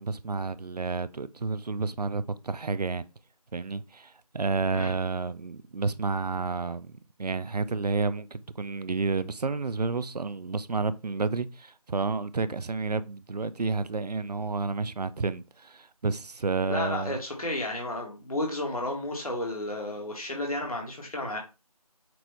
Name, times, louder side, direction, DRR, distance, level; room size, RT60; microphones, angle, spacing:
voice 1, 0.0-3.0 3.5-6.9 7.2-17.2, right 4 dB, 85° right, 0.5 m, -30 dB
voice 2, 16.7-21.4, left 1 dB, 65° left, 1.5 m, -32 dB
6.0 x 2.6 x 3.1 m
figure-of-eight pair, 180°, 20 cm